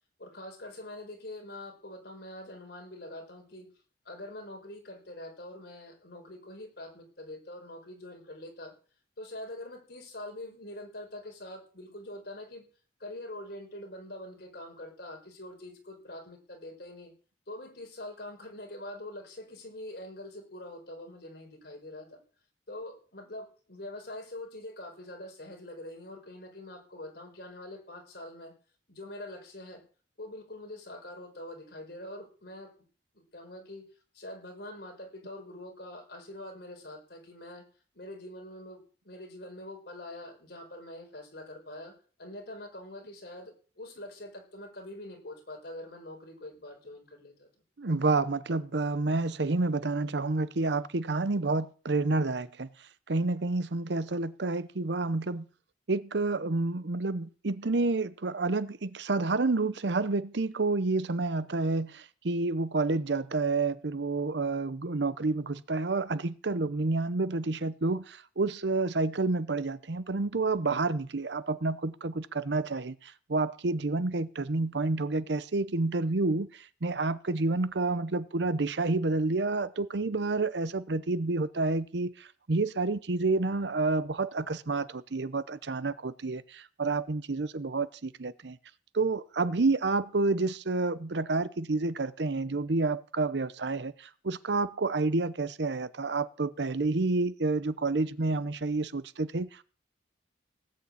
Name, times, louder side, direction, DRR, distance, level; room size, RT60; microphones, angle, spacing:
voice 1, 0.2-3.7 4.0-8.7 9.2-12.7 13.0-17.1 17.5-22.2 22.7-28.5 28.9-29.8 30.2-32.7 33.1-33.8 34.1-37.6 37.9-47.5, left 1 dB, 60° left, 5.0 m, -44 dB
voice 2, 47.8-52.7 53.1-55.5 55.9-88.6 88.9-99.6, right 3 dB, 70° right, 0.8 m, -29 dB
18.0 x 6.6 x 8.6 m
head